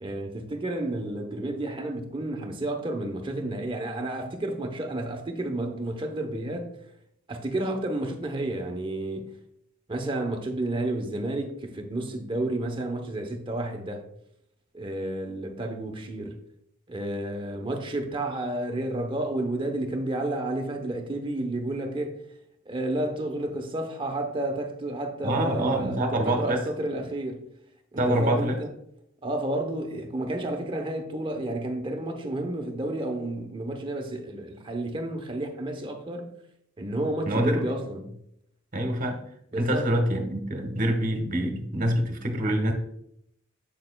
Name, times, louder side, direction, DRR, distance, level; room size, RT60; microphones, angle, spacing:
voice 1, 0.0-6.7 7.3-9.3 9.9-14.1 14.7-16.4 16.9-22.2 22.6-27.5 27.9-28.7 29.2-36.3 36.8-38.2 39.5-39.9, right 1 dB, 25° right, 0.8 m, -31 dB
voice 2, 25.2-26.6 28.0-28.6 37.2-37.6 38.7-39.2 39.6-42.7, right 1 dB, 40° right, 1.1 m, -25 dB
7.6 x 6.5 x 2.3 m
head